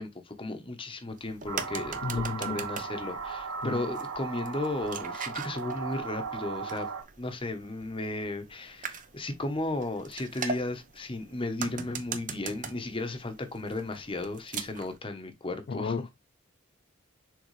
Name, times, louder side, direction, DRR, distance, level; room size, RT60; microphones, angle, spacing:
voice 1, 0.0-6.9 7.2-16.1, left 2 dB, 25° left, 1.0 m, -35 dB
sound 1, 1.1-15.0, right 5 dB, 40° right, 0.8 m, -42 dB
sound 2, 1.5-7.0, right 5 dB, 80° right, 1.6 m, -37 dB
voice 2, 2.0-2.6 3.6-3.8 15.7-16.1, left 4 dB, 45° left, 0.3 m, -33 dB
6.5 x 4.4 x 3.2 m
head